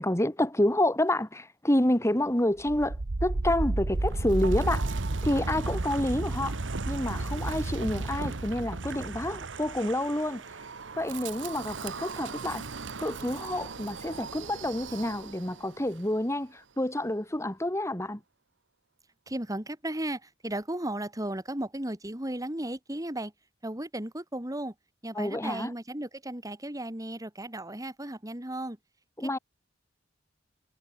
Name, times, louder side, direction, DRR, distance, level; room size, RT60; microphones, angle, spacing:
voice 1, 0.0-4.9 5.2-6.6 6.9-10.4 11.0-12.7 13.0-18.2 25.2-25.7 29.2-29.4, left 1 dB, 15° left, 2.4 m, -28 dB
Wind, 2.6-15.6, right 2 dB, 75° right, 1.1 m, -33 dB
voice 2, 19.3-23.3 23.6-24.7 25.0-28.8 29.2-29.4, right 1 dB, 20° right, 2.8 m, -35 dB
head